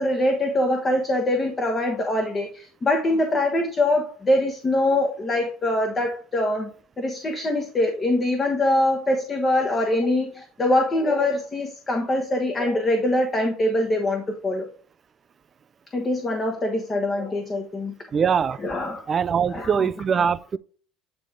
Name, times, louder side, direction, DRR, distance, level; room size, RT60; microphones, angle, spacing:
voice 1, 0.0-6.7 7.0-14.7 15.9-17.9 18.6-19.0 19.5-19.7 20.1-20.3, left 1 dB, 20° left, 1.1 m, -23 dB
voice 2, 18.1-18.6 19.1-20.6, right 7 dB, 30° right, 0.3 m, -22 dB
9.4 x 3.3 x 3.8 m
cardioid pair, 125°, 0 cm